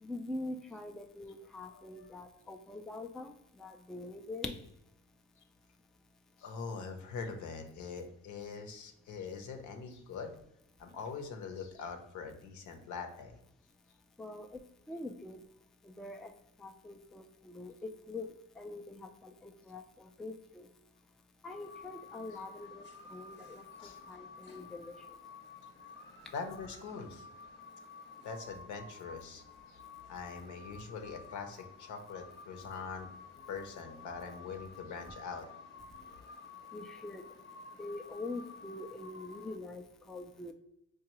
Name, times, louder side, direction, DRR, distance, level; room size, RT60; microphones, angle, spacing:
voice 1, 0.0-4.6 14.2-14.6 14.9-15.4 15.8-16.3 16.6-20.7 21.4-24.9 36.7-37.2 37.8-40.5, left 2 dB, ahead, 5 dB, 0.3 m, -44 dB
voice 2, 6.4-10.4 10.8-13.4 23.8-24.0 26.3-27.3 28.2-29.4 29.7-29.8 30.1-33.1 33.5-35.5, left 5 dB, 75° left, 5 dB, 0.7 m, -43 dB
sound 1, 21.5-39.6, left 4 dB, 35° left, 0.7 m, -52 dB
4.6 x 2.3 x 3.0 m, 0.82 s
cardioid pair, 90°, 30 cm